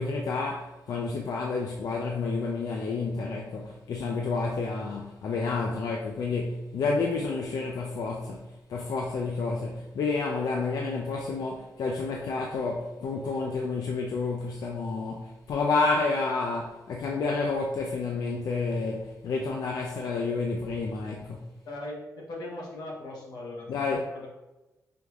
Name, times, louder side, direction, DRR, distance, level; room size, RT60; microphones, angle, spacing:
voice 1, 0.0-21.5 23.7-24.1, left 3 dB, 70° left, 0.4 m, -30 dB
voice 2, 21.6-24.3, left 1 dB, 90° left, 1.0 m, -39 dB
5.1 x 2.9 x 2.3 m
wide cardioid pair, 130°, 7 cm